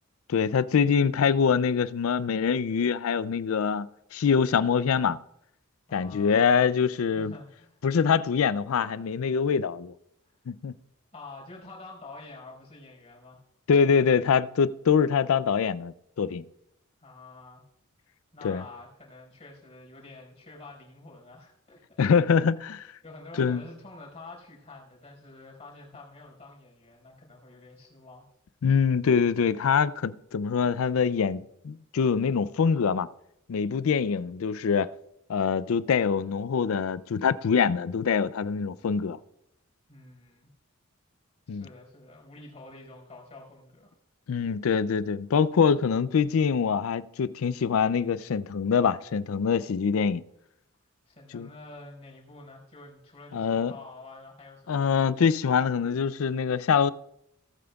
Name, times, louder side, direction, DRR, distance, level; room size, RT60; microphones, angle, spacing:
voice 1, 0.3-3.9 4.1-5.2 5.9-7.3 7.8-9.9 10.5-10.7 13.7-16.4 18.4-18.6 22.0-22.8 23.4-23.6 28.6-33.1 33.5-34.9 35.3-39.2 41.5-41.7 44.3-50.2 51.3-51.5 53.3-53.7 54.7-56.9, left 6 dB, 75° left, 0.4 m, -24 dB
voice 2, 5.9-6.6 7.1-7.8 11.1-13.4 17.0-17.6 18.3-21.8 23.0-28.3 39.9-40.5 41.5-43.9 51.1-55.0, left 2 dB, 30° left, 4.3 m, -47 dB
18.0 x 8.6 x 2.3 m
head